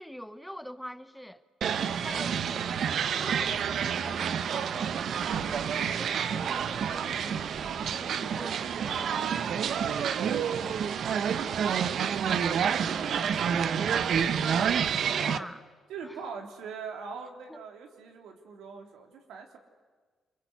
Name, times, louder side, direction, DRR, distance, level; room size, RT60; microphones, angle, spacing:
voice 1, 0.0-1.4 2.0-2.7 3.2-9.4 15.0-15.6 16.0-16.2 17.5-17.6, equal, ahead, 0.9 m, -44 dB
sound 1, 1.6-15.4, right 7 dB, 65° right, 0.9 m, -29 dB
voice 2, 9.7-14.4 14.9-15.0 15.4-15.5 15.9-19.6, right 5 dB, 85° right, 3.6 m, -43 dB
28.5 x 23.0 x 8.3 m
cardioid pair, 90°, 0 cm